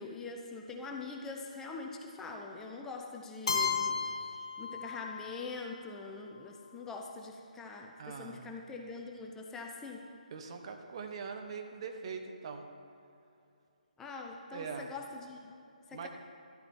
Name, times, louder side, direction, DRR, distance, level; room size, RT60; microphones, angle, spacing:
voice 1, 0.0-10.1 14.0-15.5 15.9-16.1, left 3 dB, 10° left, 1 dB, 0.7 m, -44 dB
Keyboard (musical), 3.5-5.4, left 5 dB, 45° left, 1.4 m, -33 dB
voice 2, 8.0-8.6 10.3-12.7 14.5-14.9 15.9-16.1, right 5 dB, 45° right, 5 dB, 1.1 m, -42 dB
12.0 x 12.0 x 4.5 m, 2.6 s
figure-of-eight pair, 145°, 4 cm